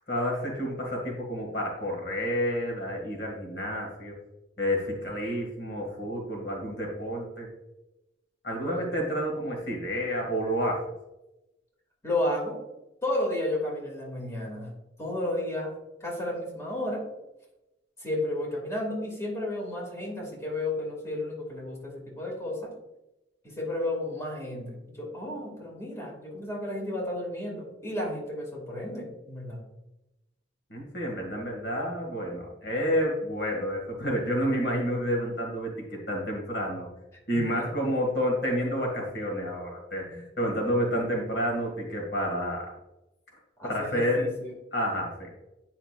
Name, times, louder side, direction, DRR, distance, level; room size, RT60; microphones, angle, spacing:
voice 1, 0.1-4.1 4.6-7.5 8.4-10.8 30.7-36.9 37.3-42.7 43.6-44.3 44.7-45.3, equal, 60° left, 0 dB, 2.2 m, -29 dB
voice 2, 12.0-12.6 13.0-14.7 15.0-15.7 16.0-17.0 18.0-22.7 23.4-29.6 37.3-37.4 37.8-37.9 43.6-44.5, left 1 dB, 15° left, -4 dB, 2.4 m, -32 dB
9.3 x 5.8 x 2.5 m, 0.93 s
head